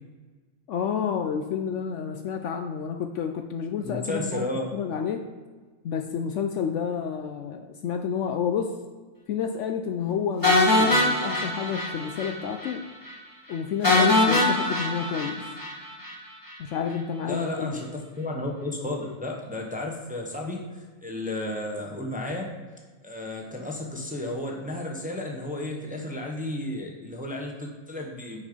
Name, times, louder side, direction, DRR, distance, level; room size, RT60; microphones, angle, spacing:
voice 1, 0.7-4.5 4.7-5.2 5.8-8.7 9.3-12.8 13.5-15.4 16.6-17.8, left 7 dB, 70° left, 5 dB, 0.8 m, -30 dB
voice 2, 3.8-4.8 17.3-22.5 23.0-28.4, left 1 dB, 5° right, 0 dB, 0.7 m, -33 dB
sound 1, 10.4-12.3 12.6-12.7 13.1-13.2 13.8-16.1, left 2 dB, 15° left, 1.3 m, -22 dB
6.1 x 5.4 x 5.1 m, 1.4 s
omnidirectional pair, 1.5 m